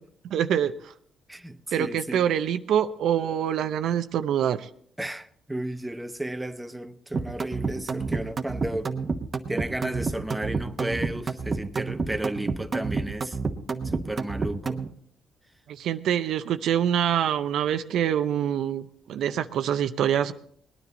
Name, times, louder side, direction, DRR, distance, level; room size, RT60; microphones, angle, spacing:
voice 1, 0.3-0.9 1.7-4.7 15.7-20.3, right 9 dB, 75° right, 0.6 m, -25 dB
voice 2, 1.3-2.2 5.0-9.0 9.5-13.4 13.8-14.8, right 1 dB, 10° right, 0.8 m, -33 dB
sound 1, 7.1-14.9, right 4 dB, 35° right, 1.1 m, -29 dB
19.5 x 10.0 x 4.0 m
cardioid pair, 90°, 0 cm